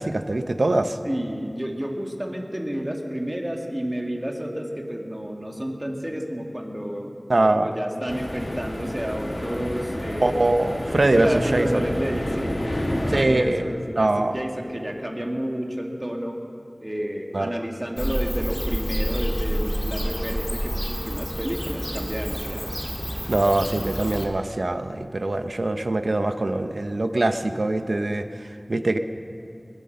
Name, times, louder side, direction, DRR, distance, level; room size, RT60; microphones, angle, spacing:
voice 1, 0.0-1.0 7.3-7.7 10.2-11.9 13.1-14.4 17.3-17.5 23.3-29.0, right 2 dB, 85° right, 8 dB, 0.7 m, -23 dB
voice 2, 1.0-7.1 7.5-10.5 11.1-16.4 16.8-22.7, equal, 25° right, 1 dB, 2.1 m, -30 dB
sound 1, 8.1-13.2, left 1 dB, 75° left, 2.0 m, -29 dB
Bird / Cricket, 18.0-24.2, equal, 5° left, 2.1 m, -28 dB
21.5 x 9.9 x 6.7 m, 2.5 s
wide cardioid pair, 45°, 0 cm